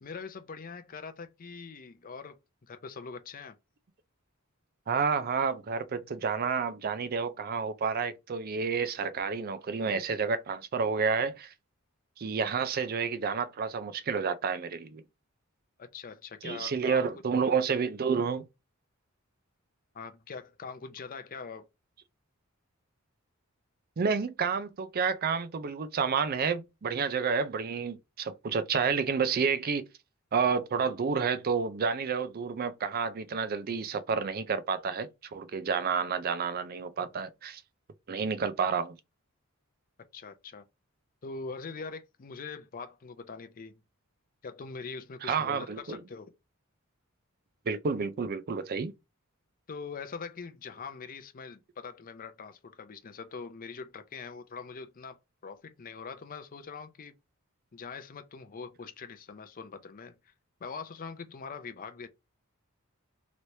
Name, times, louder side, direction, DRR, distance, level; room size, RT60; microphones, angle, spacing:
voice 1, 0.0-3.5 15.8-17.1 19.9-21.7 40.1-40.7 41.2-43.8 44.4-46.3 49.7-57.1 57.7-60.3 60.6-62.1, left 5 dB, 40° left, 0.5 m, -43 dB
voice 2, 4.9-11.5 12.2-15.0 16.4-18.4 24.0-29.8 30.3-37.6 38.1-38.9 45.2-46.0 47.7-48.9, right 5 dB, 45° right, 0.4 m, -30 dB
3.2 x 3.0 x 2.7 m
head